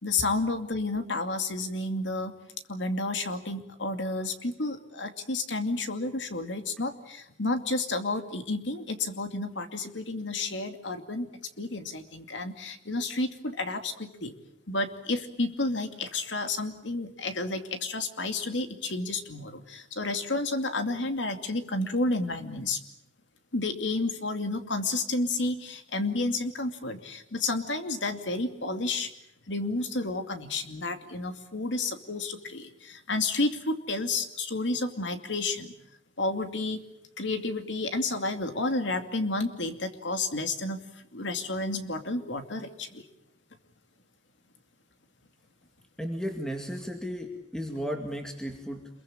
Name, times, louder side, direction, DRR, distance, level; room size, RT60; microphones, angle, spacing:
voice 1, 0.0-2.3 2.7-11.3 11.6-14.3 14.7-22.8 23.5-29.1 29.5-35.7 36.2-36.8 37.2-40.8 41.1-43.0, left 2 dB, 85° left, 7 dB, 2.5 m, -31 dB
voice 2, 46.0-48.9, equal, 5° left, 3 dB, 2.2 m, -34 dB
27.5 x 22.5 x 8.7 m, 0.77 s
head